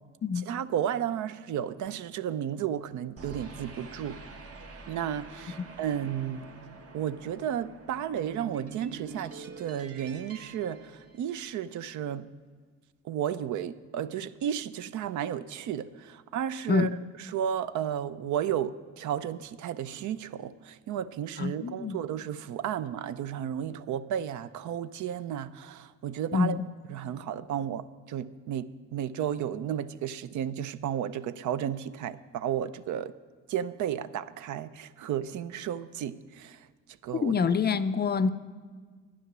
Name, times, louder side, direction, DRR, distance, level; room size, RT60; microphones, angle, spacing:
voice 1, 0.5-4.2 4.9-6.4 6.9-12.3 13.0-16.9 17.3-26.6 26.9-33.1 33.5-36.6 37.0-37.3, right 9 dB, 75° right, 0.5 m, -33 dB
sound 1, 3.2-11.7, right 4 dB, 50° right, 1.3 m, -46 dB
voice 2, 21.4-22.0 26.3-26.6 37.2-38.3, left 5 dB, 35° left, 0.5 m, -26 dB
11.0 x 9.5 x 6.0 m
cardioid pair, 90°, 30 cm